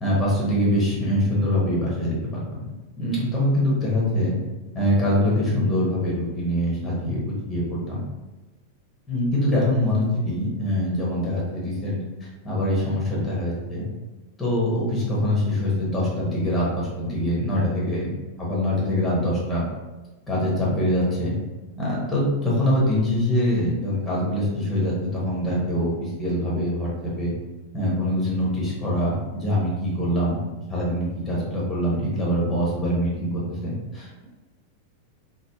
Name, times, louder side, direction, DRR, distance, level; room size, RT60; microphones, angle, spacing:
voice 1, 0.0-2.6 3.0-4.3 4.7-7.2 7.5-8.0 9.1-13.9 14.4-18.1 18.4-19.6 20.3-21.3 21.8-27.3 27.7-30.4 30.7-34.3, left 1 dB, 15° left, -5 dB, 1.0 m, -24 dB
3.1 x 2.1 x 3.0 m, 1.1 s
figure-of-eight pair, 90°, 0 cm